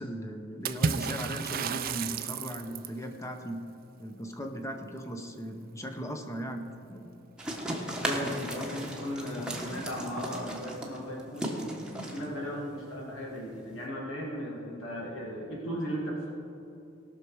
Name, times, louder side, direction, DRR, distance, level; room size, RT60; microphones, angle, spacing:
voice 1, 0.0-3.6 4.0-7.1, equal, 15° left, 5 dB, 0.9 m, -38 dB
Water / Splash splatter, 0.6-3.0, right 5 dB, 45° right, 0.4 m, -32 dB
sound 1, 7.4-13.8, right 1 dB, 5° right, 1.2 m, -37 dB
voice 2, 8.0-11.7 12.0-16.3, equal, 80° left, -3 dB, 1.9 m, -36 dB
18.0 x 6.2 x 4.8 m, 2.8 s
head